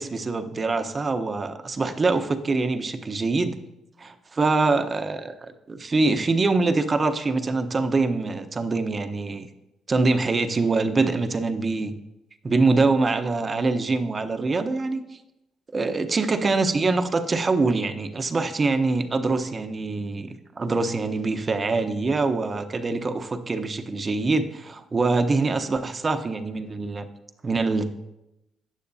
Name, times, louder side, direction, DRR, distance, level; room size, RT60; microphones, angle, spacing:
voice 1, 0.0-3.6 4.0-9.5 9.9-11.9 12.4-15.0 15.7-27.1 27.4-27.9, right 3 dB, 30° right, 8 dB, 0.8 m, -24 dB
13.5 x 9.2 x 2.7 m, 0.92 s
cardioid pair, 90°, 0 cm